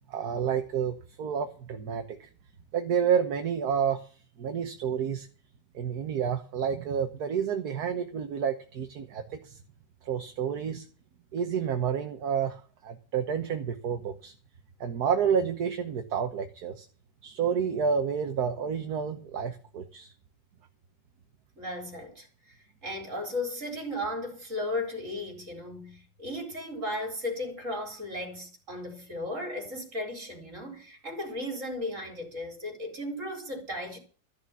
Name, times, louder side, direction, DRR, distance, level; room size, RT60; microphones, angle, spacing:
voice 1, 0.1-2.3 2.7-4.1 4.4-5.3 5.7-9.6 10.0-10.9 11.3-14.3 14.8-16.8 17.2-20.1, right 7 dB, 60° right, 1.6 m, -29 dB
voice 2, 21.6-22.6 22.8-34.0, left 1 dB, 40° right, 4.7 m, -35 dB
14.0 x 6.7 x 9.6 m
omnidirectional pair, 2.0 m